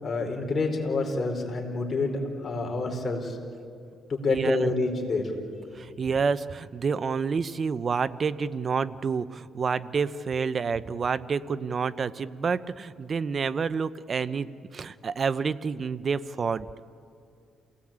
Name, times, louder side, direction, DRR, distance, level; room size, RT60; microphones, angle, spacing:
voice 1, 0.0-2.1 2.4-3.4 4.1-5.2, left 3 dB, 40° left, 3 dB, 4.4 m, -27 dB
voice 2, 4.3-4.7 5.7-16.7, right 5 dB, 45° right, 16 dB, 0.7 m, -28 dB
28.5 x 17.5 x 8.8 m, 2.4 s
cardioid pair, 90°, 0 cm